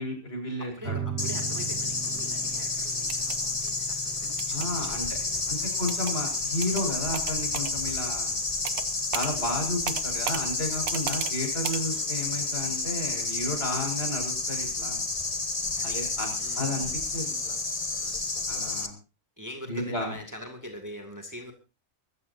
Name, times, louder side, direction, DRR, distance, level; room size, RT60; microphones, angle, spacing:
voice 1, 0.0-1.0 4.5-5.1 5.5-8.4 9.1-15.0 15.8-16.3 16.5-17.6 18.0-18.1 18.5-18.9 19.7-20.1, left 1 dB, 45° left, 4 dB, 6.2 m, -32 dB
voice 2, 0.6-5.8 9.2-9.6 11.9-12.1 15.8-16.0 16.4-16.9 19.4-21.5, equal, 10° right, 4 dB, 2.3 m, -44 dB
sound 1, 0.8-11.8, right 6 dB, 45° right, 2.6 m, -41 dB
sound 2, 1.2-18.9, left 3 dB, 25° left, 1.4 m, -30 dB
sound 3, 3.0-3.4 4.4-4.7 5.9-6.1 6.6-6.8 7.1-7.7 8.6-8.9 9.1-9.3 9.9-10.4 10.9-11.3 11.6-11.8, right 9 dB, 75° right, 1.4 m, -34 dB
24.0 x 14.5 x 2.7 m, 0.30 s
omnidirectional pair, 1.5 m